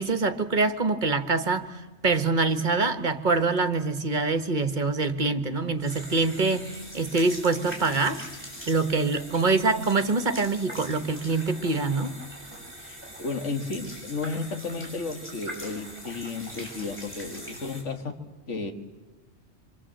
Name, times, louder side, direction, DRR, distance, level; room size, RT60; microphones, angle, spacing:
voice 1, 0.0-1.7 2.0-6.7 6.9-8.2 8.7-12.1, right 3 dB, 40° right, 9 dB, 1.4 m, -25 dB
sound 1, 5.7-17.8, equal, 10° left, 6.3 m, -42 dB
voice 2, 12.8-18.2 18.5-18.7, left 4 dB, 65° left, 5 dB, 2.2 m, -33 dB
27.5 x 24.0 x 7.7 m, 1.2 s
omnidirectional pair, 1.3 m